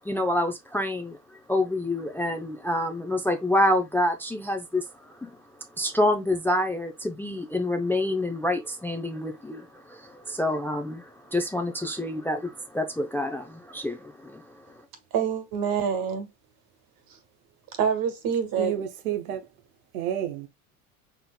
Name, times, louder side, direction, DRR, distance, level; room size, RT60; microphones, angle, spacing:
voice 1, 0.0-5.4 5.8-14.8, left 1 dB, 5° left, 0.5 m, -27 dB
voice 2, 15.1-16.3 17.8-18.8, right 7 dB, 50° right, 1.7 m, -26 dB
voice 3, 18.6-19.4 19.9-20.5, right 10 dB, 90° right, 0.8 m, -30 dB
4.4 x 3.6 x 2.2 m
hypercardioid pair, 95°, 43 cm